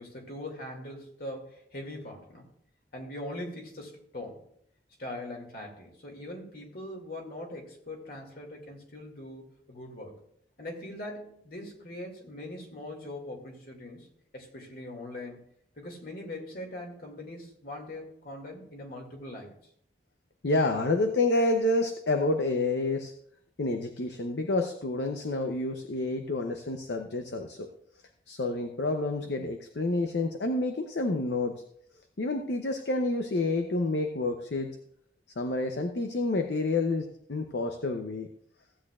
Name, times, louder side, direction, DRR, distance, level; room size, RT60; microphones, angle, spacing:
voice 1, 0.0-2.5 2.9-4.5 5.0-10.2 10.6-14.1 14.3-15.5 15.8-19.5, left 1 dB, 55° left, 1 dB, 2.3 m, -41 dB
voice 2, 20.4-23.1 23.6-27.7 28.3-31.6 32.2-34.7 35.4-38.3, left 2 dB, 70° left, 5 dB, 0.7 m, -29 dB
15.5 x 8.4 x 2.4 m, 0.69 s
head